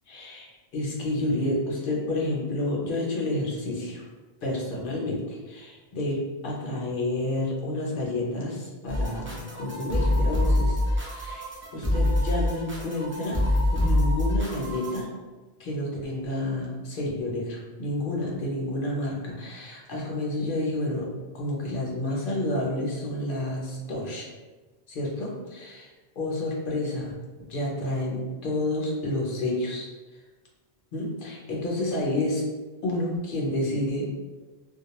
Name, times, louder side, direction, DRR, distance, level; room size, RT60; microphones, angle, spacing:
voice 1, 0.1-4.0 4.4-13.4 13.7-15.1 15.6-21.1 21.3-24.3 24.9-25.9 26.2-27.1 27.5-29.9 30.9-32.4 32.8-34.1, left 1 dB, 55° left, -3 dB, 0.8 m, -30 dB
sound 1, 8.9-15.0, left 1 dB, 20° right, 0.3 m, -25 dB
2.2 x 2.2 x 3.0 m, 1.2 s
omnidirectional pair, 1.1 m